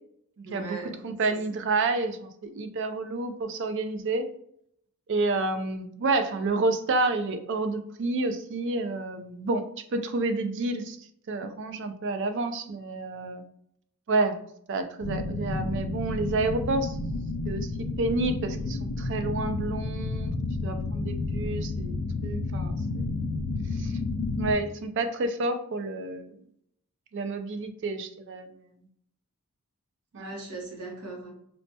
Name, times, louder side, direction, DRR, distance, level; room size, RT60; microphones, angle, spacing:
voice 1, 0.4-1.4 30.2-31.3, right 3 dB, 85° right, -1 dB, 1.0 m, -40 dB
voice 2, 1.0-4.2 5.1-9.7 9.9-11.0 11.3-13.4 14.1-14.4 14.7-17.0 17.5-17.7 18.0-20.3 20.6-23.2 23.7-24.0 24.4-26.3 27.1-28.6 30.1-30.3, right 3 dB, 55° right, 9 dB, 0.4 m, -29 dB
sound 1, 15.0-24.5, left 3 dB, 85° left, 0.4 m, -31 dB
4.1 x 2.2 x 2.7 m, 0.69 s
head